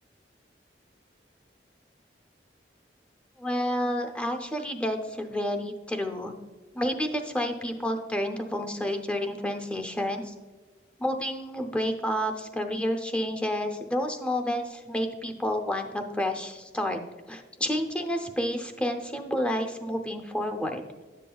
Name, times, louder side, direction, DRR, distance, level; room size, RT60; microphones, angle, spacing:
voice 1, 3.4-6.3 6.7-10.3 11.0-17.0 17.3-20.8, equal, 5° left, 5 dB, 0.6 m, -30 dB
10.5 x 7.3 x 2.3 m, 1.3 s
head